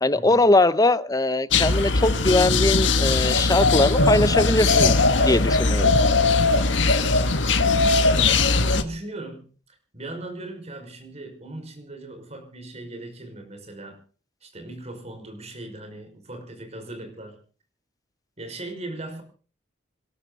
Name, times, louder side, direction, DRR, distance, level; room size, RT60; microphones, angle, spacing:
voice 1, 0.0-4.9 5.2-5.9, left 2 dB, 20° left, 15 dB, 0.8 m, -21 dB
sound 1, 1.5-8.8, left 3 dB, 80° left, 1.7 m, -20 dB
voice 2, 5.9-6.3 7.0-7.3 8.2-14.0 14.4-17.4 18.4-19.2, right 2 dB, 35° right, 5 dB, 5.6 m, -38 dB
26.5 x 12.5 x 4.1 m, 0.39 s
head